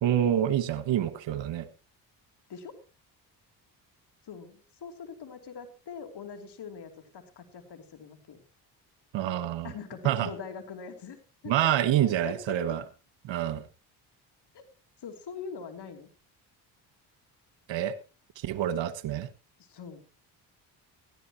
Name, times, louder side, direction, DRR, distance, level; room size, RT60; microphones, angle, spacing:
voice 1, 0.0-1.7 9.1-9.7 10.0-10.3 11.5-12.8 13.2-13.6 17.7-17.9 18.4-19.3, right 11 dB, 70° right, 13 dB, 1.4 m, -27 dB
voice 2, 4.2-8.4 9.6-11.2 11.4-11.5 11.8-12.8 14.5-14.7 15.0-16.1 19.6-20.0, left 6 dB, 55° left, 6 dB, 3.1 m, -43 dB
19.5 x 13.5 x 3.0 m, 0.32 s
supercardioid pair, 60°, 48 cm